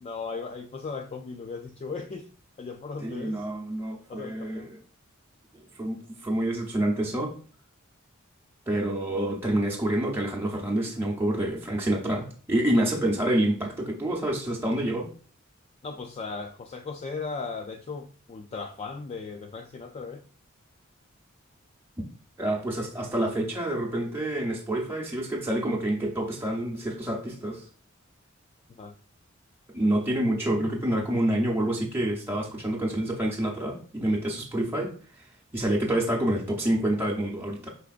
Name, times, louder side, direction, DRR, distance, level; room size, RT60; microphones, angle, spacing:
voice 1, 0.0-2.3 2.6-3.5 4.1-4.7 15.8-20.2 28.7-28.9, left 4 dB, 30° left, 5 dB, 0.3 m, -37 dB
voice 2, 3.0-4.8 5.8-7.3 8.7-15.1 22.4-27.6 29.7-35.3 35.5-37.7, right 1 dB, 10° right, -3 dB, 0.7 m, -27 dB
4.9 x 4.2 x 2.5 m, 0.42 s
head